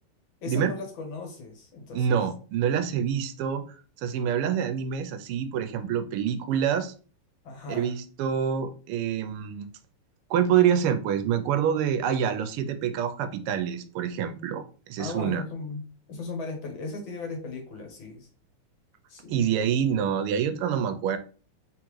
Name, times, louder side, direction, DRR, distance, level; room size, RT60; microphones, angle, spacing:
voice 1, 0.4-2.1 7.4-7.9 15.0-15.8 16.1-18.3 19.1-19.4, left 3 dB, 65° left, 2 dB, 1.8 m, -37 dB
voice 2, 1.9-3.6 4.0-6.9 7.7-9.7 10.3-15.4 19.3-21.2, right 8 dB, 85° right, 9 dB, 1.5 m, -26 dB
3.8 x 3.6 x 3.0 m, 0.38 s
omnidirectional pair, 2.4 m